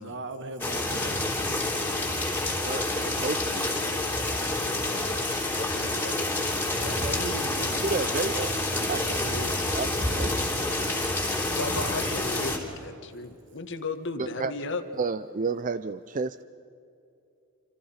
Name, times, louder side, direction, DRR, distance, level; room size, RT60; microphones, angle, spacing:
voice 1, 0.0-1.4 6.7-7.8, right 2 dB, 55° right, 2.0 m, -39 dB
sound 1, 0.6-12.6, left 2 dB, 10° left, 3.2 m, -28 dB
voice 2, 2.5-3.7 7.8-8.6 8.9-9.4 9.7-10.9 14.2-14.5 15.0-16.4, right 4 dB, 35° right, 0.5 m, -32 dB
voice 3, 5.5-6.7 9.2-9.6 11.5-14.8, left 3 dB, 55° left, 1.7 m, -36 dB
27.5 x 26.5 x 5.8 m
head